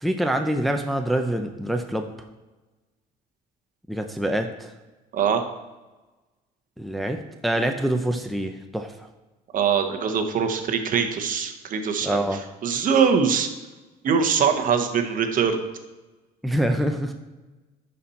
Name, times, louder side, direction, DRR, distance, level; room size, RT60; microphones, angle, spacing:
voice 1, 0.0-2.1 3.9-4.7 6.8-8.9 12.0-12.4 16.4-17.1, right 1 dB, ahead, 5 dB, 0.6 m, -25 dB
voice 2, 9.5-12.2 12.6-13.5 14.0-15.6, right 6 dB, 55° right, 6 dB, 1.0 m, -22 dB
11.0 x 4.3 x 4.3 m, 1.2 s
cardioid pair, 110°, 17 cm